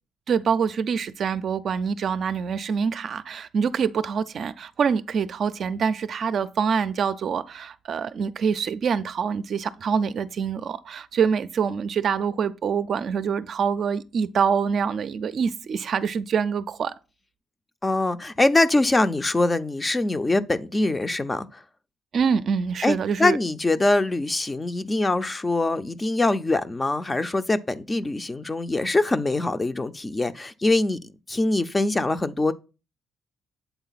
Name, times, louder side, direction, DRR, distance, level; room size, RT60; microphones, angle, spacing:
voice 1, 0.3-16.9 22.1-23.4, right 6 dB, 55° right, 0.4 m, -25 dB
voice 2, 17.8-21.6 22.8-31.0 31.3-32.5, left 2 dB, 20° left, 0.5 m, -23 dB
8.0 x 3.8 x 4.0 m
cardioid pair, 90°, 0 cm